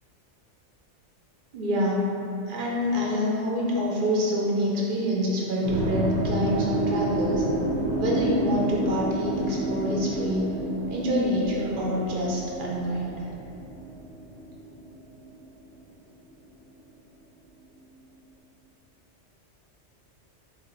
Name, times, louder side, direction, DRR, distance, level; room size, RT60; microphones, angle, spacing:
voice 1, 1.5-2.1 2.5-7.4 8.0-10.5 10.9-13.1, equal, 55° right, -4 dB, 0.6 m, -26 dB
sound 1, 5.6-15.8, right 1 dB, 85° right, 1.0 m, -30 dB
3.2 x 2.4 x 3.8 m, 2.7 s
omnidirectional pair, 1.3 m